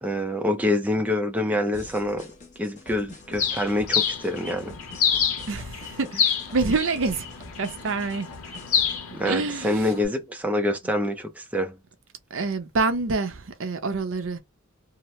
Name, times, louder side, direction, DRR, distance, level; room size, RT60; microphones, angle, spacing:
voice 1, 0.0-2.3 2.6-4.7 9.1-11.8, left 1 dB, 5° right, 0.4 m, -26 dB
sound 1, 1.7-9.0, left 1 dB, 35° left, 1.0 m, -47 dB
Bird, 3.4-10.1, left 7 dB, 80° left, 0.8 m, -28 dB
voice 2, 5.5-7.3 7.6-8.3 9.2-9.8 12.3-14.4, right 4 dB, 65° right, 0.6 m, -27 dB
2.8 x 2.0 x 3.1 m
head